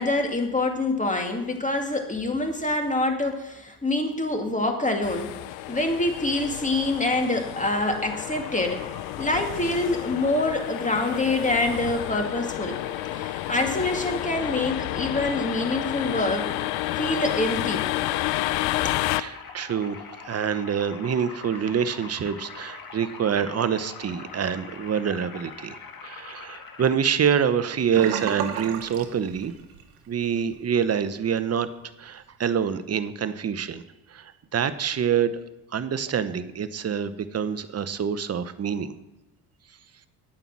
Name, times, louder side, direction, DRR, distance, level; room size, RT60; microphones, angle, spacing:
voice 1, 0.0-5.3 5.7-8.8 9.2-12.8 13.1-16.5 17.0-18.2 18.8-19.0, left 2 dB, 15° left, 4 dB, 2.2 m, -26 dB
sound 1, 5.0-19.2, left 17 dB, 70° left, 0.6 m, -30 dB
sound 2, 8.1-27.0, left 5 dB, 50° left, 1.7 m, -43 dB
voice 2, 19.2-20.0 20.2-29.5 30.1-31.7 32.0-33.8 34.1-35.3 35.7-38.9, right 7 dB, 35° right, 12 dB, 0.9 m, -26 dB
Sink (filling or washing), 27.9-29.9 30.2-30.5 30.9-31.0, right 8 dB, 85° right, 1.2 m, -32 dB
9.0 x 8.8 x 6.1 m, 1.0 s
hypercardioid pair, 60°, 45 cm